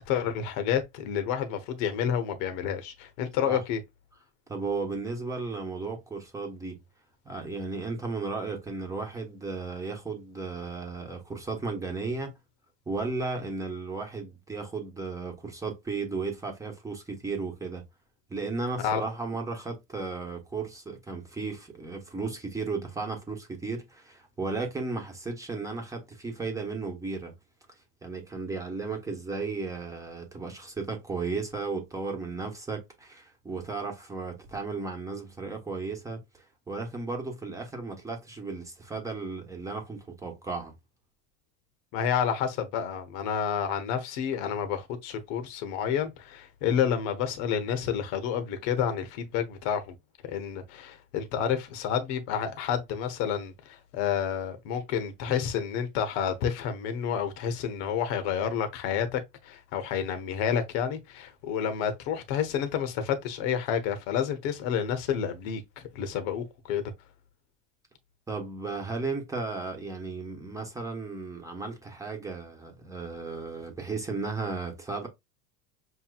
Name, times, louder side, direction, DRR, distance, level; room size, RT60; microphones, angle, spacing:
voice 1, 0.0-3.8 18.8-19.0 41.9-49.9 50.3-66.9, left 8 dB, 60° left, 1.1 m, -29 dB
voice 2, 4.5-6.8 7.2-12.3 12.9-17.8 18.3-27.3 28.0-40.7 68.3-75.1, right 3 dB, 10° right, 1.2 m, -35 dB
6.4 x 3.0 x 2.4 m
supercardioid pair, 145°, 36 cm